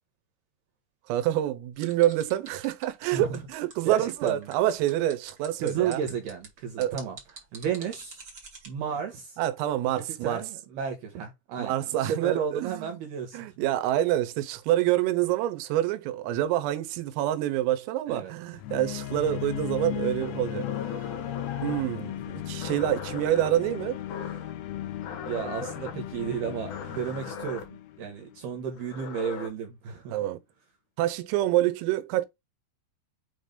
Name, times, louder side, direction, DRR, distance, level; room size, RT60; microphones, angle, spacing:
voice 1, 1.1-6.0 6.8-7.0 9.4-10.4 11.6-13.0 13.3-20.7 21.6-24.0 30.1-30.4 31.0-32.3, right 13 dB, 90° right, 3.6 m, -27 dB
sound 1, 1.8-8.7, right 4 dB, 55° right, 1.1 m, -46 dB
voice 2, 3.8-4.5 5.6-7.2 7.5-8.2 8.7-9.4 9.9-11.8 12.1-13.5 18.1-18.3 25.2-27.7 28.0-30.1, right 7 dB, 70° right, 2.5 m, -32 dB
sound 2, 18.6-28.6, left 12 dB, 90° left, 3.6 m, -36 dB
sound 3, 20.2-21.9 22.6-23.5 24.1-24.5 25.0-25.9 26.7-27.6 28.7-29.5, left 5 dB, 60° left, 2.1 m, -39 dB
8.0 x 2.7 x 5.2 m
omnidirectional pair, 5.8 m